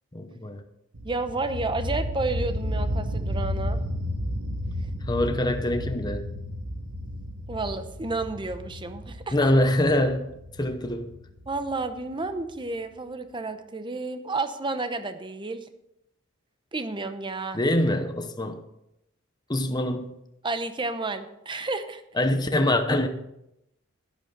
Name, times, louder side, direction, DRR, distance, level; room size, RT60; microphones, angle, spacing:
voice 1, 0.1-0.6 5.1-6.2 9.3-11.1 17.5-18.6 19.5-20.1 22.1-23.1, left 1 dB, 20° left, 6 dB, 0.8 m, -24 dB
sound 1, 0.9-12.5, equal, 85° right, 1.7 m, -32 dB
voice 2, 1.0-3.8 7.5-9.5 11.5-15.7 16.7-17.6 20.4-22.0, right 3 dB, 25° right, 9 dB, 0.8 m, -31 dB
12.0 x 10.0 x 4.0 m, 0.83 s
head